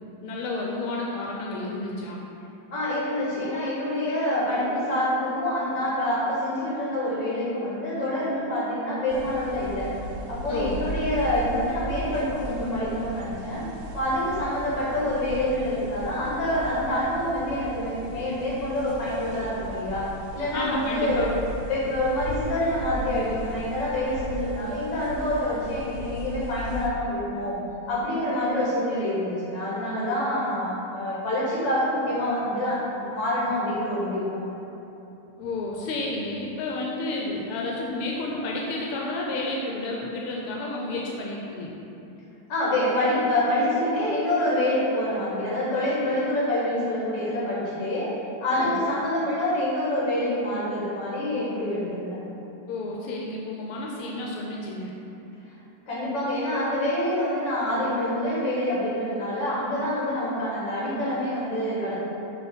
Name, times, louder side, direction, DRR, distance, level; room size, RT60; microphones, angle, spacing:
voice 1, 0.2-2.2 10.5-10.8 20.5-21.3 35.4-41.7 48.5-48.7 52.7-54.9, left 2 dB, 90° left, -2 dB, 1.5 m, -31 dB
voice 2, 2.7-9.9 10.3-13.7 13.9-21.3 21.7-27.6 27.9-34.6 42.5-48.1 48.4-52.2 55.9-62.0, left 1 dB, 55° left, -7 dB, 2.2 m, -26 dB
sound 1, 9.1-26.9, right 1 dB, 85° right, 0.8 m, -37 dB
6.2 x 3.0 x 5.1 m, 2.9 s
omnidirectional pair, 2.4 m